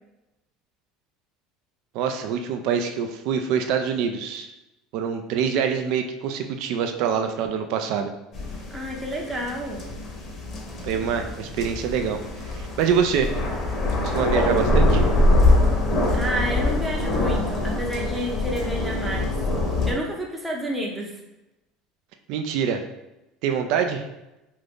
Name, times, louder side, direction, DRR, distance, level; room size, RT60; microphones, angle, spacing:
voice 1, 1.9-4.5 4.9-8.1 10.8-12.2 12.4-13.3 14.0-15.0 22.3-22.8 23.4-24.1, right 7 dB, 65° right, 6 dB, 0.3 m, -25 dB
sound 1, 8.3-19.9, left 2 dB, 40° left, 0.8 m, -23 dB
voice 2, 8.7-9.9 16.1-19.3 19.9-21.1, equal, 10° right, -1 dB, 0.6 m, -30 dB
2.5 x 2.5 x 3.5 m, 0.93 s
supercardioid pair, 95°, 0 cm